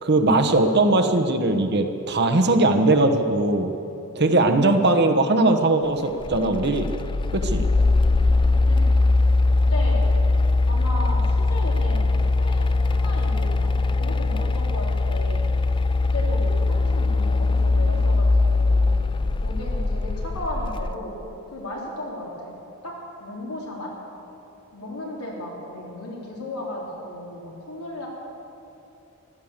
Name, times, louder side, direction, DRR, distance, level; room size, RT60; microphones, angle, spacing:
voice 1, 0.0-3.7 4.2-6.9 7.3-7.6, right 2 dB, 50° right, 6 dB, 1.1 m, -20 dB
sound 1, 6.2-20.9, left 3 dB, 20° left, 0.4 m, -21 dB
voice 2, 9.7-10.1 10.6-13.7 14.0-15.4 16.1-18.9 19.4-21.2 21.5-22.6 22.8-22.9 23.2-23.9 24.7-28.1, left 1 dB, 85° left, -3 dB, 3.7 m, -35 dB
14.5 x 12.0 x 7.4 m, 2.8 s
head